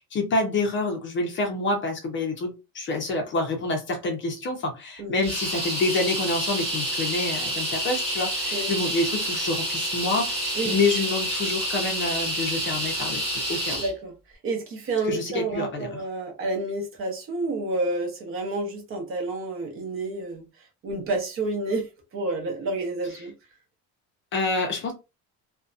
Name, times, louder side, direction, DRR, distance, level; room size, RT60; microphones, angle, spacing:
voice 1, 0.0-13.8 15.1-16.0 24.3-24.9, left 2 dB, 35° left, 0.5 m, -27 dB
sound 1, 5.2-13.9, right 1 dB, 15° right, 0.9 m, -28 dB
voice 2, 13.8-14.1 14.4-20.5 20.8-23.3, right 2 dB, 40° right, 0.7 m, -29 dB
2.6 x 2.1 x 2.3 m
cardioid pair, 180°, 34 cm